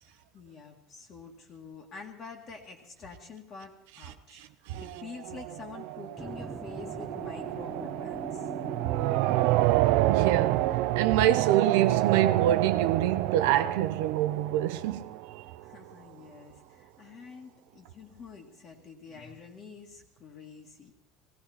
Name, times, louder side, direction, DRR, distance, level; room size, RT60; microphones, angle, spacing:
voice 1, 0.1-4.5 4.8-8.5 15.6-20.9, left 4 dB, 30° left, 2.0 m, -47 dB
voice 2, 4.3-4.8 8.8-8.9 10.1-15.0, right 11 dB, 90° right, 0.9 m, -26 dB
sound 1, 4.7-15.6, right 17 dB, 65° right, 0.5 m, -28 dB
sound 2, 6.2-16.3, right 1 dB, 5° right, 0.8 m, -45 dB
18.0 x 16.0 x 4.3 m
cardioid pair, 170°, 0 cm